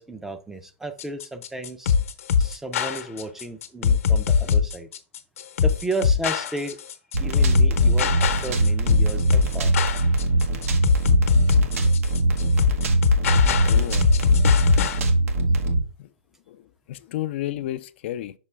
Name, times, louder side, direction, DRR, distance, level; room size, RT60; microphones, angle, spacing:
voice 1, 0.0-1.9 2.4-4.9 5.6-6.8 7.2-8.1 8.4-9.9, right 2 dB, 5° right, 0.4 m, -33 dB
sound 1, 1.0-15.0, left 6 dB, 80° left, 0.9 m, -21 dB
sound 2, 7.1-15.8, right 2 dB, 85° right, 1.2 m, -22 dB
voice 2, 13.6-14.0 16.0-16.1 16.5-16.6 16.9-18.3, left 13 dB, 55° left, 0.3 m, -31 dB
6.1 x 5.3 x 3.2 m
supercardioid pair, 155°, 7 cm